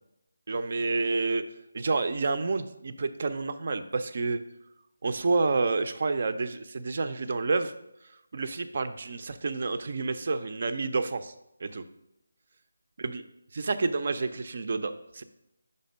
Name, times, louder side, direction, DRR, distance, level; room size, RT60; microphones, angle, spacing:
voice 1, 0.5-1.4 1.7-4.4 5.0-7.7 8.3-11.3 11.6-11.8 13.0-13.2 13.5-15.2, right 3 dB, 45° right, 11 dB, 0.4 m, -29 dB
5.3 x 4.2 x 5.2 m, 0.86 s
figure-of-eight pair, 170°, 0 cm